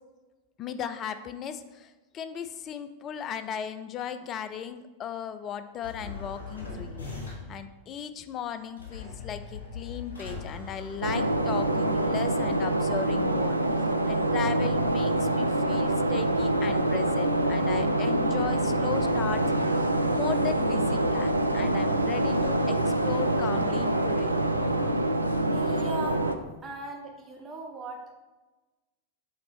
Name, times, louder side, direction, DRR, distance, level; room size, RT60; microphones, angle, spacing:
voice 1, 0.6-7.1 7.5-13.6 14.1-19.4 20.1-24.3, left 8 dB, 30° left, 10 dB, 0.4 m, -36 dB
sound 1, 5.8-7.6 8.8-11.6, left 4 dB, 65° left, 1.5 m, -40 dB
sound 2, 11.0-26.4, right 1 dB, 85° right, 0.4 m, -25 dB
voice 2, 25.5-26.3 26.6-28.1, right 3 dB, 20° right, 1 dB, 0.7 m, -38 dB
6.5 x 4.0 x 4.2 m, 1.2 s
figure-of-eight pair, 90°, 0 cm